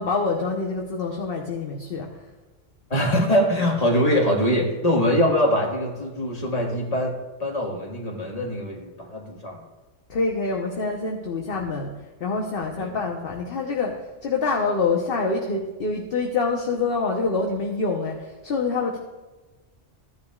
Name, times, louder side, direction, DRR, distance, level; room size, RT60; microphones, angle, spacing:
voice 1, 0.0-2.1 10.1-11.9 12.2-19.0, left 4 dB, 50° left, 0 dB, 1.1 m, -26 dB
voice 2, 2.9-9.6 12.8-12.9, equal, 30° left, -1 dB, 1.7 m, -23 dB
14.5 x 10.0 x 2.4 m, 1.2 s
omnidirectional pair, 1.3 m